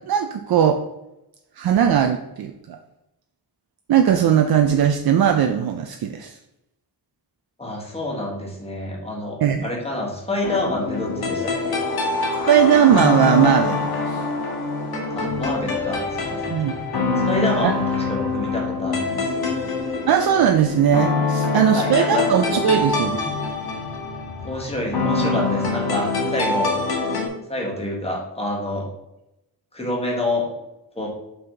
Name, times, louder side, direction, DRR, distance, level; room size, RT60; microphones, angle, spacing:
voice 1, 0.1-0.8 1.6-2.8 3.9-6.4 9.4-9.7 12.5-14.2 16.5-16.7 17.6-17.7 20.1-23.2, right 9 dB, 75° right, 6 dB, 0.5 m, -18 dB
voice 2, 7.6-11.8 15.1-16.5 17.2-19.5 21.5-22.3 22.8-23.0 24.4-26.7 27.5-28.9 29.7-30.5 30.9-31.1, left 1 dB, 15° left, -1 dB, 1.4 m, -27 dB
sound 1, 10.4-27.3, left 3 dB, 75° left, 1.4 m, -24 dB
5.6 x 5.6 x 3.9 m, 0.89 s
wide cardioid pair, 180°, 38 cm